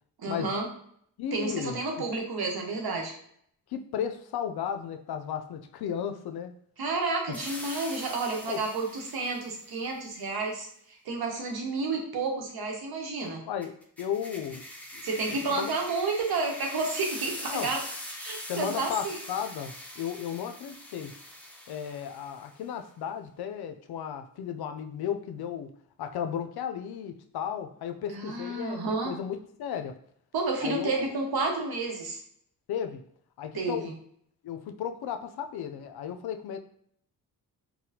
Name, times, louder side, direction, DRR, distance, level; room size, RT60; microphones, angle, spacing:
voice 1, 0.2-0.7 1.3-3.1 6.8-13.4 15.0-17.8 18.1-19.2 28.1-29.1 30.3-32.2 33.5-33.9, right 3 dB, 75° right, 1 dB, 1.0 m, -31 dB
voice 2, 1.2-1.8 3.7-6.5 8.5-8.6 13.5-13.7 14.0-14.6 14.9-15.7 17.5-17.7 18.5-21.1 21.7-25.7 26.0-30.0 30.6-31.1 32.7-33.0 33.4-33.9 34.4-36.6, left 8 dB, 75° left, 7 dB, 0.5 m, -34 dB
sound 1, 7.3-9.7 13.6-22.5, left 1 dB, 5° left, 0.7 m, -42 dB
4.0 x 2.2 x 2.7 m, 0.66 s
cardioid pair, 75°, 38 cm